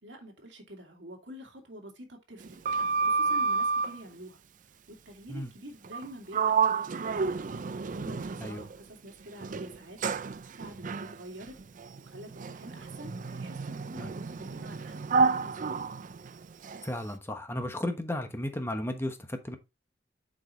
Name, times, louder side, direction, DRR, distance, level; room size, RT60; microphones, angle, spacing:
voice 1, 0.0-4.4 4.9-10.0 10.5-11.6 12.0-15.8, right 1 dB, 75° right, 2.3 m, -48 dB
Sliding door, 2.4-4.0 5.8-6.1 6.3-8.8 9.4-16.9, right 5 dB, 45° right, 0.5 m, -30 dB
voice 2, 16.8-19.6, left 1 dB, 15° left, 1.1 m, -34 dB
8.1 x 4.9 x 3.0 m
head